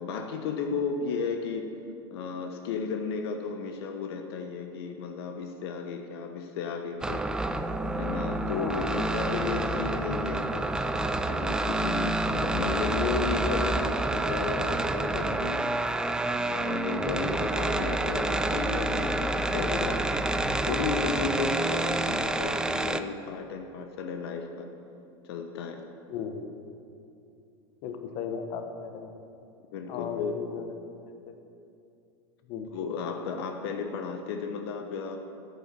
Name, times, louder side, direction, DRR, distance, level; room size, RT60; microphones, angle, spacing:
voice 1, 0.0-1.7 2.1-7.3 8.0-10.7 11.3-15.8 16.3-20.0 20.7-24.7 25.2-25.8 29.7-30.4 32.7-35.2, left 5 dB, 70° left, 5 dB, 0.9 m, -34 dB
sound 1, 7.0-23.0, right 2 dB, 5° right, 0.4 m, -28 dB
voice 2, 8.5-9.0 12.2-12.6 17.4-17.6 19.6-20.0 26.1-26.5 27.8-29.2 29.9-31.0 31.3-31.4 32.5-32.7, left 6 dB, 50° left, 6 dB, 1.0 m, -36 dB
8.6 x 8.2 x 6.7 m, 2.6 s
supercardioid pair, 125°, 13 cm